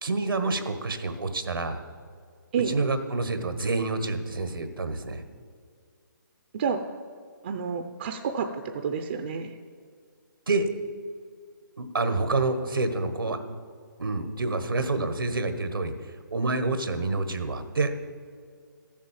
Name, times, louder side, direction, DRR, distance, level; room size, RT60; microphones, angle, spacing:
voice 1, 0.0-1.8 2.7-5.2 10.5-10.7 11.8-13.4 14.0-18.0, right 3 dB, 90° right, 9 dB, 1.4 m, -28 dB
voice 2, 7.4-9.5, right 6 dB, 35° right, 6 dB, 0.6 m, -29 dB
13.5 x 7.4 x 7.3 m, 2.1 s
hypercardioid pair, 160°, 11 cm